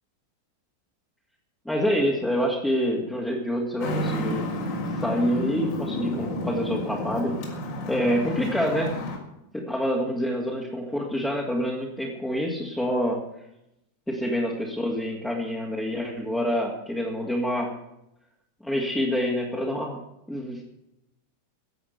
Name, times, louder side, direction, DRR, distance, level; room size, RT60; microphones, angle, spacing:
voice 1, 1.6-4.5 5.0-7.3 7.9-8.9 9.5-13.2 14.1-17.7 18.6-20.0 20.3-20.6, equal, 5° left, -3 dB, 2.7 m, -27 dB
Traffic noise roadway noise, 3.8-9.2, left 1 dB, 45° left, 4.3 m, -30 dB
16.0 x 8.6 x 8.3 m, 0.84 s
figure-of-eight pair, 90°, 0 cm